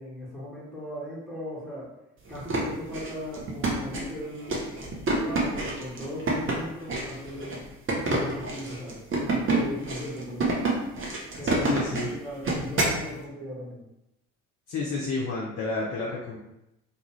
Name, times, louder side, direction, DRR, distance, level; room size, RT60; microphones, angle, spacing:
voice 1, 0.0-1.9 2.3-4.7 5.1-7.6 7.9-10.5 11.4-13.8, equal, ahead, -8 dB, 1.3 m, -38 dB
sound 1, 2.3-13.0, right 2 dB, 30° right, 0.8 m, -28 dB
voice 2, 11.4-12.1 14.7-16.4, left 3 dB, 35° left, -4 dB, 0.6 m, -31 dB
2.4 x 2.4 x 3.0 m, 0.88 s
figure-of-eight pair, 55°, 44 cm